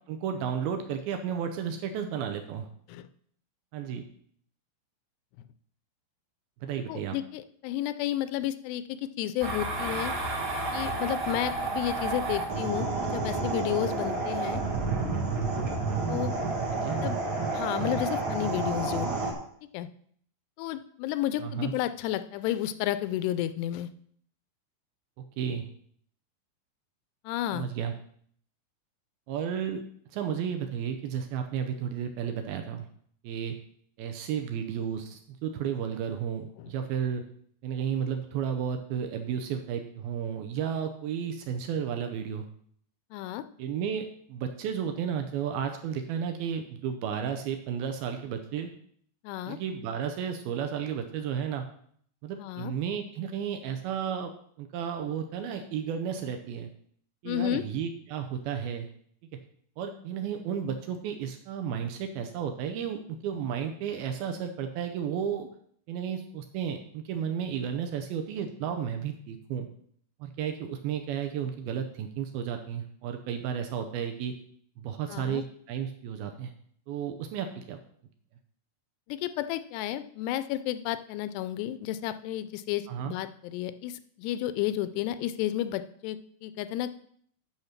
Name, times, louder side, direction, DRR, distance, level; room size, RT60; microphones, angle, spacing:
voice 1, 0.1-2.7 3.7-4.0 6.6-7.2 16.7-17.0 21.4-21.7 25.2-25.7 27.5-27.9 29.3-29.8 30.1-32.9 33.2-33.6 34.0-37.2 37.6-42.5 43.6-48.7 49.5-51.7 52.2-54.3 54.6-56.7 57.2-58.9 59.8-65.5 65.9-69.7 70.2-74.4 74.8-76.5 76.9-77.8 82.9-83.1, right 8 dB, 75° right, 5 dB, 2.3 m, -33 dB
voice 2, 6.9-10.1 10.7-14.6 16.1-16.3 17.0-17.2 17.5-19.3 19.7-19.9 20.6-23.9 27.3-27.7 36.6-36.7 43.1-43.4 49.2-49.6 52.4-52.7 57.3-57.6 75.1-75.4 79.1-86.9, left 13 dB, 85° left, 12 dB, 2.6 m, -32 dB
sound 1, 9.4-19.3, right 3 dB, 45° right, 1.7 m, -30 dB
8.8 x 6.6 x 5.8 m, 0.62 s
omnidirectional pair, 4.9 m